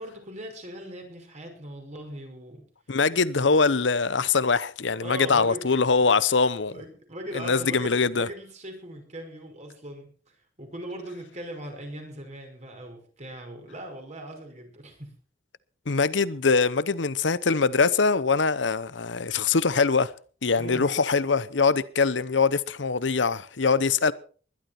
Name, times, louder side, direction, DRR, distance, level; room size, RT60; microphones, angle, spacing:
voice 1, 0.0-2.6 3.3-3.5 5.0-6.1 6.7-10.1 10.6-15.1 20.6-20.9, right 1 dB, 40° right, 5.6 m, -39 dB
voice 2, 2.9-6.8 7.3-8.3 15.9-20.1 20.4-24.1, left 4 dB, 75° left, 0.9 m, -23 dB
20.5 x 12.5 x 4.4 m
head